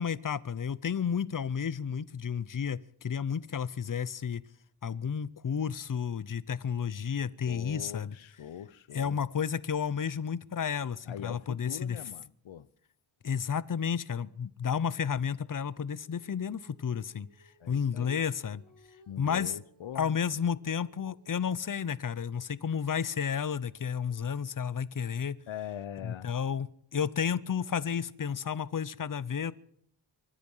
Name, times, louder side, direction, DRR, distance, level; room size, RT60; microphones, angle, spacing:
voice 1, 0.0-4.4 4.8-8.2 8.9-12.0 13.2-17.3 17.7-18.6 19.2-19.5 19.9-25.4 26.0-29.5, left 7 dB, 45° left, 0.7 m, -32 dB
voice 2, 7.5-9.2 11.1-12.7 17.6-18.2 19.1-20.2 25.5-26.3, left 10 dB, 75° left, 0.8 m, -42 dB
Female singing, 16.0-21.7, left 1 dB, 45° right, 7.2 m, -64 dB
24.5 x 10.5 x 5.6 m
wide cardioid pair, 75°, 46 cm